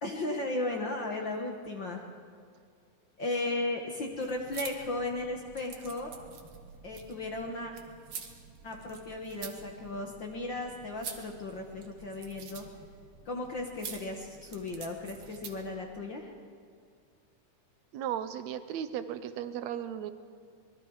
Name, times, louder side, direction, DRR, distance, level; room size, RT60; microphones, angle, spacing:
voice 1, 0.0-2.0 3.2-6.1 6.8-7.7 8.6-12.6 13.2-16.3, left 2 dB, 45° left, 1 dB, 1.7 m, -35 dB
sound 1, 4.1-15.8, right 6 dB, 55° right, 2.2 m, -47 dB
voice 2, 17.9-20.1, right 10 dB, 70° right, 12 dB, 1.9 m, -36 dB
25.5 x 21.0 x 4.8 m, 2.2 s
omnidirectional pair, 3.6 m